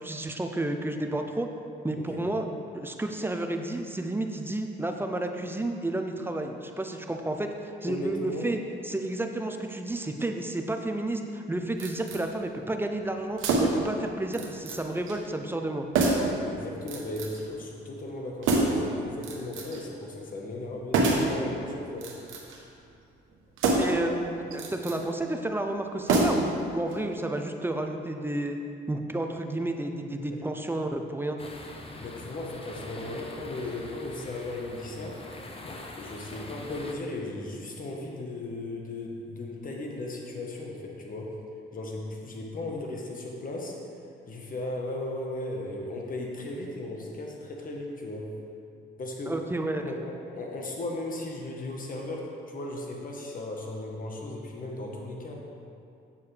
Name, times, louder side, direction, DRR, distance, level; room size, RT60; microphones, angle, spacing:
voice 1, 0.0-1.5 1.8-2.4 2.7-8.6 8.8-15.9 23.8-28.6 28.9-31.4 49.3-50.0, right 1 dB, 10° right, 4 dB, 0.6 m, -31 dB
voice 2, 7.9-8.5 16.4-22.1 30.3-30.4 32.0-35.2 35.9-41.3 41.7-43.8 44.3-48.3 49.0-49.3 49.8-50.0 50.3-55.3, left 2 dB, 45° left, 0 dB, 1.3 m, -36 dB
sound 1, 11.8-12.2 13.4-13.9 14.3-14.8 15.1-15.2 15.9-16.4 16.9-17.4 18.4-18.9 19.2-19.8 20.9-21.3 21.9-22.6 23.6-24.0 24.5-25.0 26.1-26.6 26.9-27.0, right 3 dB, 90° right, 1.1 m, -26 dB
sound 2, 31.4-36.9, left 2 dB, 30° left, 0.9 m, -43 dB
8.5 x 6.9 x 3.4 m, 2.5 s
cardioid pair, 90°, 20 cm